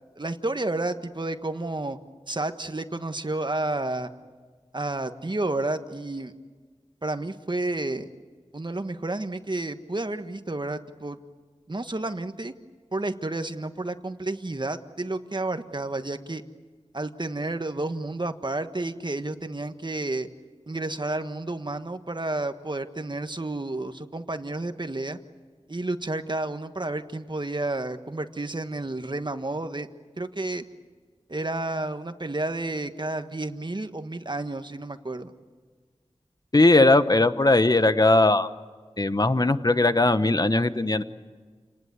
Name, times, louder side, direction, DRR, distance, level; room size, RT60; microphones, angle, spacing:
voice 1, 0.2-2.0 2.3-4.1 4.7-6.3 7.0-8.1 8.5-11.2 11.7-12.5 12.9-16.4 16.9-20.3 20.7-25.2 25.7-29.9 30.2-30.6 31.3-35.3, right 2 dB, 40° right, 8 dB, 1.5 m, -31 dB
voice 2, 36.5-38.5 39.0-41.0, left 2 dB, 35° left, 11 dB, 1.1 m, -19 dB
29.0 x 19.5 x 9.5 m, 1.5 s
wide cardioid pair, 60°, 11 cm